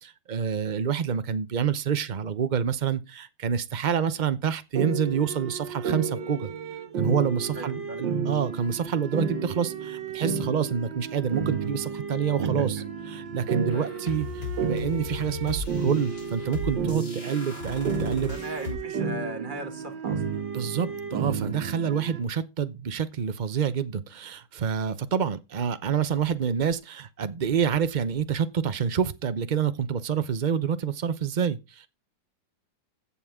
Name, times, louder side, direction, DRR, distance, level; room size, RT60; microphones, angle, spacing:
voice 1, 0.0-6.5 7.0-18.3 20.5-31.9, right 7 dB, 65° right, 0.4 m, -27 dB
sound 1, 4.8-22.2, right 6 dB, 80° right, 2.0 m, -32 dB
voice 2, 7.6-8.0 12.4-12.8 13.7-13.9 18.3-20.2, right 2 dB, 25° right, 2.0 m, -38 dB
sound 2, 13.7-18.7, left 3 dB, 65° left, 4.5 m, -36 dB
15.0 x 7.2 x 3.6 m
omnidirectional pair, 1.9 m